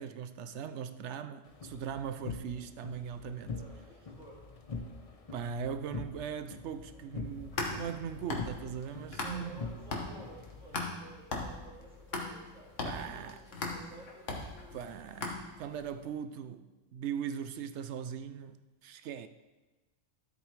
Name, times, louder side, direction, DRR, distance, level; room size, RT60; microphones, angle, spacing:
voice 1, 0.0-3.6 5.3-9.6 12.8-13.4 14.7-18.6 18.8-19.3, right 8 dB, 70° right, 0.8 m, -39 dB
sound 1, 1.5-10.8, left 3 dB, 35° left, 0.7 m, -44 dB
voice 2, 3.5-4.4 9.2-14.8 15.7-15.8, right 1 dB, 5° right, 2.1 m, -53 dB
sound 2, 7.3-9.6 9.9-15.8, left 3 dB, 70° left, 1.7 m, -38 dB
12.5 x 8.1 x 3.2 m
omnidirectional pair, 1.3 m